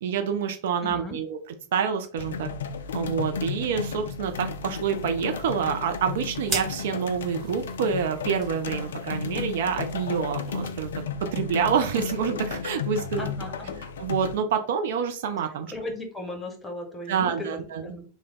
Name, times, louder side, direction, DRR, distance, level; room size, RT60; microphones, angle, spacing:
voice 1, 0.0-1.4 1.7-2.5 2.9-10.9 11.3-13.3 14.0-15.7 17.1-17.9, right 7 dB, 55° right, 6 dB, 0.4 m, -27 dB
voice 2, 0.8-1.2 13.2-13.8 15.7-18.0, left 1 dB, 5° left, 2 dB, 0.9 m, -36 dB
sound 1, 2.2-14.4, left 5 dB, 65° left, 0.3 m, -33 dB
sound 2, 4.2-11.0, right 3 dB, 25° right, 1.1 m, -41 dB
3.2 x 2.1 x 3.6 m, 0.41 s
figure-of-eight pair, 90°, 0 cm